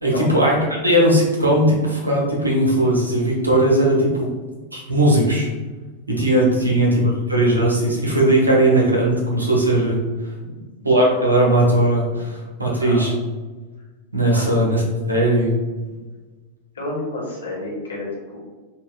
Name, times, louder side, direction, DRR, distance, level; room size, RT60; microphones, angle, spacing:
voice 1, 0.0-4.3 4.7-5.5 6.1-10.0 10.8-13.1 14.1-15.5, right 1 dB, 85° right, -2 dB, 0.8 m, -18 dB
voice 2, 16.7-18.4, left 2 dB, 75° left, -4 dB, 1.2 m, -31 dB
5.3 x 2.3 x 2.4 m, 1.3 s
figure-of-eight pair, 90°, 0 cm